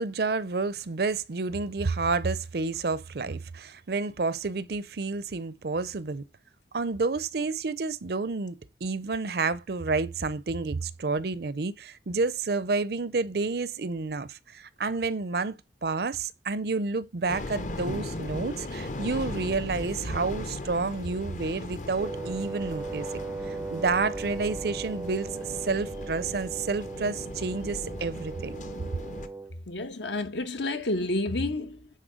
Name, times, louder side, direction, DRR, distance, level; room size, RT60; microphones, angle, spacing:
voice 1, 0.0-6.3 6.7-15.5 15.8-23.1 23.5-28.6, right 4 dB, 55° right, 0.5 m, -30 dB
sound 1, 17.3-29.3, left 2 dB, 40° left, 0.8 m, -38 dB
Wind instrument woodwind instrument, 22.0-29.6, right 3 dB, 10° right, 0.4 m, -38 dB
voice 2, 29.7-31.9, left 2 dB, 75° left, 1.3 m, -30 dB
10.0 x 4.3 x 5.0 m
head